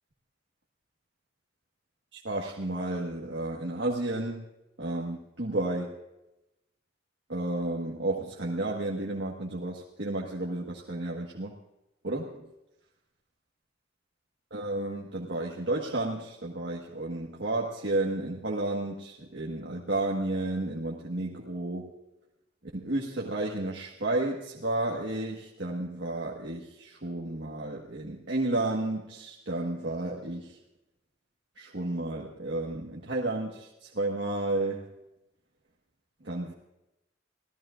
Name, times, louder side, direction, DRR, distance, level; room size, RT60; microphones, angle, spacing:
voice 1, 2.1-4.4 4.8-5.9 7.3-11.5 12.0-12.5 14.5-21.9 22.7-30.5 31.6-34.9 36.2-36.5, right 2 dB, 70° right, -3 dB, 1.6 m, -32 dB
24.5 x 17.0 x 2.5 m, 0.94 s
head